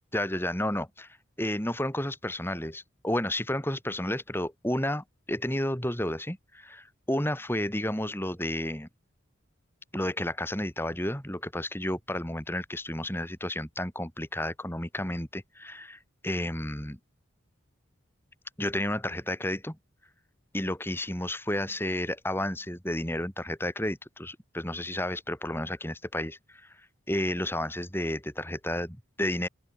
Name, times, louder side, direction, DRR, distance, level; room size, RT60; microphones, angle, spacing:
voice 1, 0.1-1.1 1.4-8.9 9.9-17.0 18.6-19.8 20.5-26.7 27.1-29.5, left 1 dB, 10° left, 5.1 m, -31 dB
open air
head